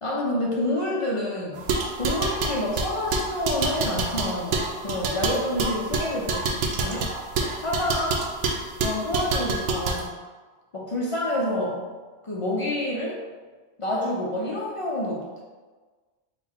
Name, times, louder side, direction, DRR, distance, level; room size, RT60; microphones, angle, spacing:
voice 1, 0.0-6.5 6.8-7.1 7.4-8.1 8.8-10.1 10.7-11.9 12.2-13.2 13.8-15.4, left 1 dB, 50° left, -4 dB, 0.3 m, -28 dB
sound 1, 1.6-10.0, right 3 dB, 75° right, 0.9 m, -27 dB
4.0 x 2.2 x 4.3 m, 1.4 s
omnidirectional pair, 1.2 m